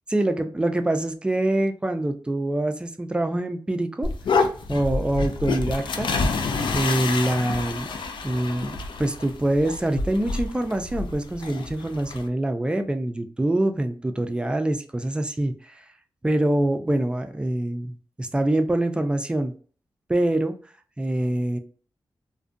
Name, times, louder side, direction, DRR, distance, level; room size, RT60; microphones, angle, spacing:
voice 1, 0.1-4.1 4.7-6.1 6.7-7.9 8.2-15.8 16.2-19.5 20.1-20.5 21.0-21.6, right 1 dB, 10° right, 7 dB, 0.3 m, -25 dB
sound 1, 4.0-12.3, left 4 dB, 75° left, 0.4 m, -28 dB
2.5 x 2.1 x 2.4 m, 0.42 s
wide cardioid pair, 90°, 8 cm